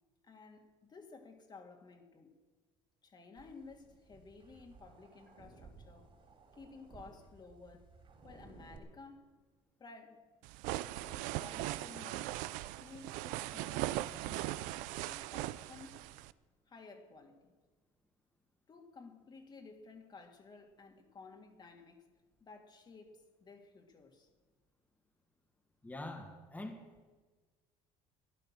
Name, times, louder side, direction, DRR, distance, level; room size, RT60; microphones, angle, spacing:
voice 1, 0.2-2.3 3.0-6.1 6.5-7.9 8.2-9.4 9.8-10.2 11.0-12.4 12.8-14.7 15.0-16.1 16.7-17.5 18.7-22.1 22.4-24.3, left 4 dB, 35° left, 2.1 m, -55 dB
sound 1, 3.4-8.8, right 4 dB, 40° right, 4.0 m, -58 dB
sound 2, 10.4-16.3, right 16 dB, 80° right, 0.5 m, -39 dB
voice 2, 25.8-26.8, left 1 dB, 10° left, 1.9 m, -44 dB
14.5 x 11.0 x 7.3 m
supercardioid pair, 90°, 13 cm